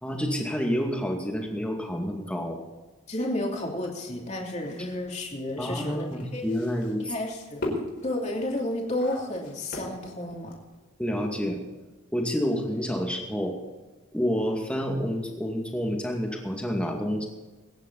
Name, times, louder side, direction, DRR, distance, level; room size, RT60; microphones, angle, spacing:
voice 1, 0.0-2.6 5.6-7.1 11.0-11.6 12.1-13.6 14.1-17.3, equal, 5° left, 1 dB, 2.3 m, -29 dB
voice 2, 3.1-6.4 7.0-7.7 8.0-10.5, left 1 dB, 30° left, -1 dB, 3.1 m, -31 dB
sound 1, 4.6-10.8, left 1 dB, 50° left, 4.6 m, -38 dB
22.5 x 10.5 x 4.1 m, 1.2 s
head